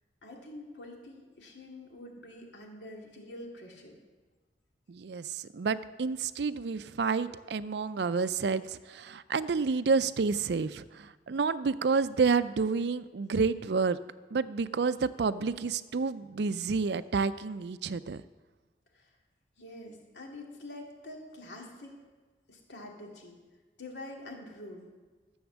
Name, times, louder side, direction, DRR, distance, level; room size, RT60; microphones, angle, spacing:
voice 1, 0.2-4.0 18.9-19.1 19.6-21.9 22.5-23.4 23.8-24.9, left 1 dB, 75° left, 1 dB, 2.3 m, -46 dB
voice 2, 4.9-14.0 14.3-18.2, right 4 dB, 70° right, 15 dB, 0.4 m, -29 dB
13.0 x 7.1 x 7.2 m, 1.3 s
head